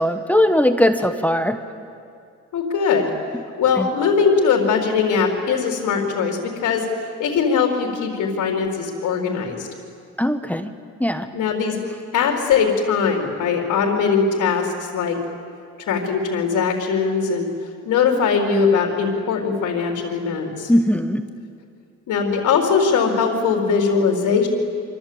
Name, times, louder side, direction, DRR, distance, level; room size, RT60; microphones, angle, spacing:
voice 1, 0.0-1.6 3.8-3.9 10.2-10.7 11.0-11.3 20.7-21.2, left 1 dB, 5° left, 7 dB, 1.3 m, -19 dB
voice 2, 2.5-3.1 3.6-6.9 7.2-9.7 11.3-11.8 12.1-15.2 15.9-17.5 17.8-20.7 22.1-24.5, left 5 dB, 70° left, 1 dB, 4.1 m, -20 dB
26.5 x 25.0 x 8.8 m, 2.4 s
cardioid pair, 125°, 32 cm